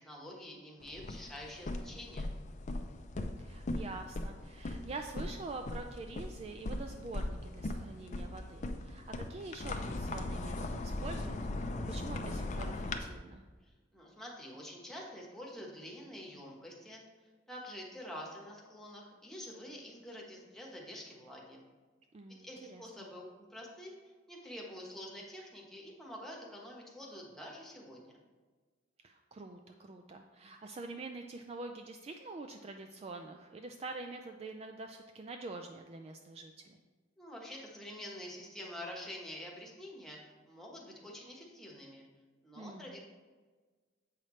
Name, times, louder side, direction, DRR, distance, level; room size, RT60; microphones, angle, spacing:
voice 1, 0.0-2.3 13.6-17.0 17.5-21.6 22.4-28.1 37.2-42.1 42.4-43.0, left 1 dB, ahead, -2 dB, 1.2 m, -47 dB
sound 1, 0.8-13.0, left 2 dB, 40° left, 0.5 m, -39 dB
voice 2, 3.4-13.4 22.1-22.8 29.0-36.8 42.5-42.9, right 3 dB, 35° right, 5 dB, 0.3 m, -46 dB
7.8 x 5.7 x 3.1 m, 1.4 s
head